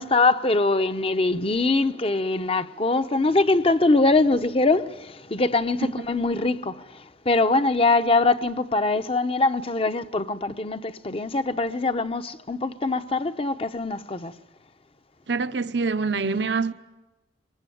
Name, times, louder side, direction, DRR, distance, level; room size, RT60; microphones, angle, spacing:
voice 1, 0.0-14.3, left 3 dB, 30° left, 0.8 m, -23 dB
voice 2, 15.3-16.7, right 4 dB, 75° right, 0.9 m, -25 dB
24.5 x 21.5 x 9.3 m
head